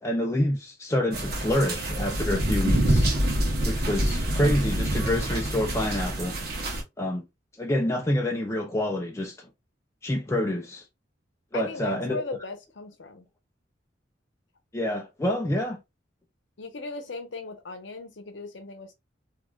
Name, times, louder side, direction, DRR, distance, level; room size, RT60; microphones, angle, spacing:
voice 1, 0.0-3.1 3.6-6.4 7.0-7.2 7.6-9.5 10.0-10.8 11.5-12.2 14.7-15.8, left 1 dB, 15° left, 0.4 m, -27 dB
sound 1, 1.1-6.8, right 1 dB, 55° right, 0.8 m, -26 dB
voice 2, 11.5-13.3 16.6-18.9, left 3 dB, 70° left, 0.7 m, -37 dB
3.0 x 2.4 x 2.2 m
head